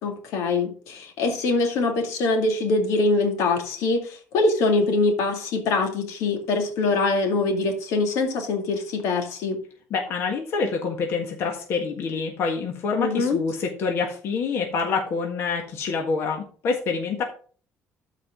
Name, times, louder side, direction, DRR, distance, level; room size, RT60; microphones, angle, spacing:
voice 1, 0.0-9.6 13.0-13.4, left 3 dB, 90° left, 3 dB, 2.2 m, -23 dB
voice 2, 9.9-17.2, left 4 dB, 55° left, 2 dB, 1.6 m, -26 dB
13.0 x 4.9 x 3.7 m, 0.42 s
cardioid pair, 175°, 5 cm